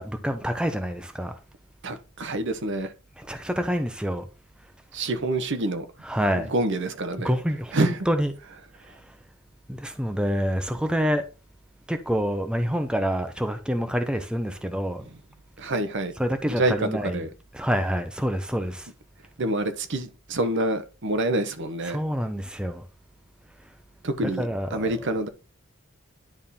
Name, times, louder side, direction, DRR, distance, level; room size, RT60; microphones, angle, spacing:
voice 1, 0.0-1.4 3.2-4.3 6.0-6.5 7.2-8.3 9.7-11.2 11.9-15.1 16.2-17.3 17.5-18.9 21.8-22.8 24.2-25.2, equal, 5° right, 0.7 m, -27 dB
voice 2, 1.8-2.9 4.9-5.9 6.3-7.3 7.7-8.1 15.0-15.2 15.6-16.1 16.5-17.3 19.4-22.0 24.0-25.3, right 2 dB, 65° right, 0.9 m, -27 dB
10.5 x 3.6 x 4.2 m
head